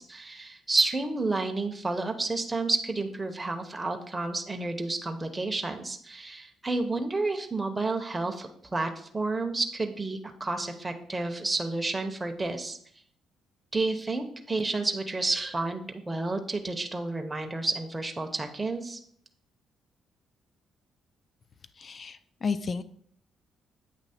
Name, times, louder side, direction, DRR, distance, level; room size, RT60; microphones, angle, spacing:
voice 1, 0.0-12.8 13.7-19.0, right 2 dB, 15° right, 4 dB, 0.7 m, -30 dB
voice 2, 21.8-22.8, left 5 dB, 40° left, 13 dB, 0.4 m, -32 dB
8.4 x 3.0 x 4.2 m, 0.64 s
cardioid pair, 90°, 0 cm